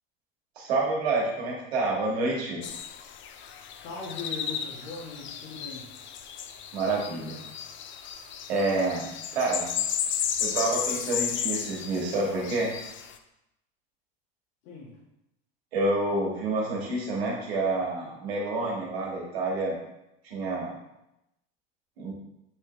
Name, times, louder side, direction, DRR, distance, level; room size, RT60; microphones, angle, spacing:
voice 1, 0.6-2.6 6.7-7.4 8.5-9.7 10.4-12.7 15.7-19.8 20.2-20.8 22.0-22.1, right 2 dB, 85° right, -2 dB, 2.0 m, -28 dB
sound 1, 2.6-13.2, left 8 dB, 40° left, 0.6 m, -34 dB
voice 2, 3.8-5.9 14.6-14.9, left 4 dB, 75° left, -5 dB, 1.7 m, -39 dB
8.0 x 3.6 x 3.3 m, 0.88 s
supercardioid pair, 100°, 30 cm